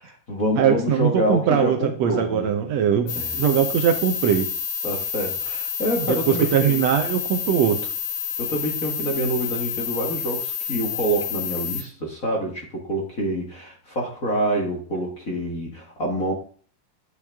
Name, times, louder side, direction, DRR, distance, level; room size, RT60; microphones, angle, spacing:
voice 1, 0.0-2.5 3.0-3.4 4.8-6.9 8.4-16.3, right 1 dB, 35° left, 0 dB, 1.8 m, -27 dB
voice 2, 0.6-4.5 6.0-7.9, right 8 dB, 70° right, 6 dB, 1.9 m, -21 dB
sound 1, 3.1-11.8, left 8 dB, 75° left, 2.5 m, -29 dB
10.5 x 8.2 x 3.6 m, 0.43 s
omnidirectional pair, 3.4 m